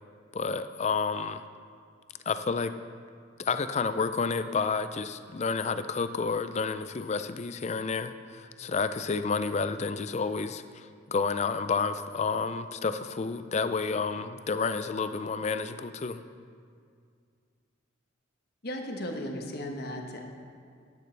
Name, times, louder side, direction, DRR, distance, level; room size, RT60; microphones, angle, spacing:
voice 1, 0.3-1.4 2.3-2.7 3.4-16.2, left 4 dB, 35° left, 11 dB, 0.4 m, -30 dB
voice 2, 18.6-20.2, left 1 dB, 50° left, 3 dB, 1.1 m, -36 dB
13.0 x 10.5 x 3.3 m, 2.2 s
head